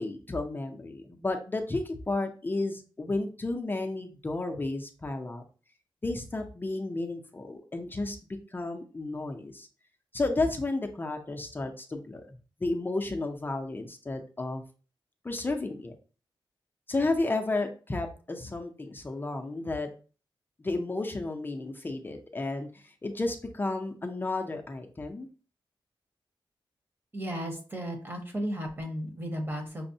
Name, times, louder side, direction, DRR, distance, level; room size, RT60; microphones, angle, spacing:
voice 1, 0.0-5.4 6.0-8.2 8.5-9.7 10.1-14.6 15.2-16.0 16.9-19.9 20.6-25.3, left 2 dB, 25° left, 4 dB, 0.5 m, -32 dB
voice 2, 27.1-29.9, equal, 25° right, 2 dB, 0.9 m, -34 dB
5.9 x 2.1 x 2.6 m, 0.37 s
wide cardioid pair, 165°, 9 cm